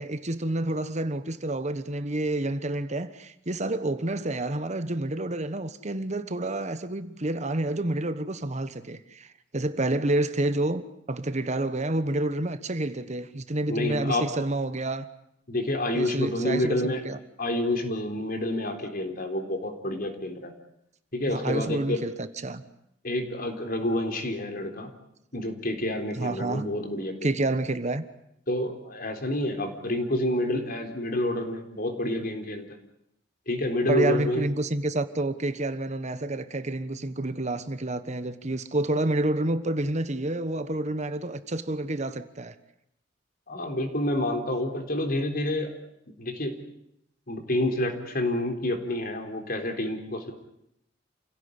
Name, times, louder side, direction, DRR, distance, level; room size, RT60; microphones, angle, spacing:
voice 1, 0.0-10.8 11.1-15.1 15.9-17.2 21.3-22.6 26.2-26.6 27.2-28.0 33.9-42.5, right 2 dB, 40° right, 1.2 m, -29 dB
voice 2, 13.7-14.3 15.5-17.0 17.4-20.5 21.1-22.0 23.0-24.9 25.3-27.4 28.5-32.8 33.5-34.5 43.5-45.7 46.2-46.6 47.3-50.3, left 1 dB, 50° left, 3.9 m, -28 dB
29.0 x 17.0 x 9.7 m
head